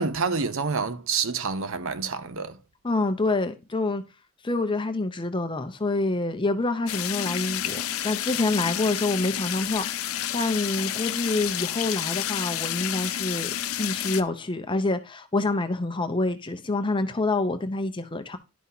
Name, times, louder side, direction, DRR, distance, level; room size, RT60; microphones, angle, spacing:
voice 1, 0.0-2.6, right 5 dB, 60° right, 0.7 m, -28 dB
voice 2, 2.8-4.0 4.4-18.4, left 2 dB, 20° left, 0.7 m, -27 dB
sound 1, 6.9-14.2, left 11 dB, 70° left, 0.6 m, -30 dB
11.0 x 5.6 x 2.8 m
head